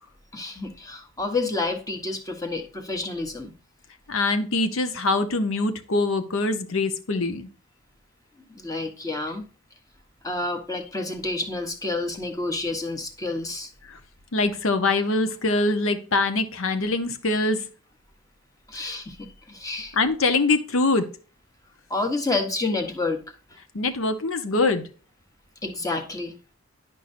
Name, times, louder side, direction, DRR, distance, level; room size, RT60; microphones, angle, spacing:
voice 1, 0.3-3.5 8.5-9.5 10.2-13.7 18.7-20.0 21.9-23.2 25.6-26.4, left 2 dB, 15° left, 4 dB, 1.0 m, -29 dB
voice 2, 4.1-7.5 13.9-14.0 14.3-17.6 18.7-18.9 19.9-21.1 23.7-24.8, left 2 dB, 70° left, 8 dB, 0.9 m, -23 dB
10.5 x 5.4 x 2.6 m, 0.38 s
head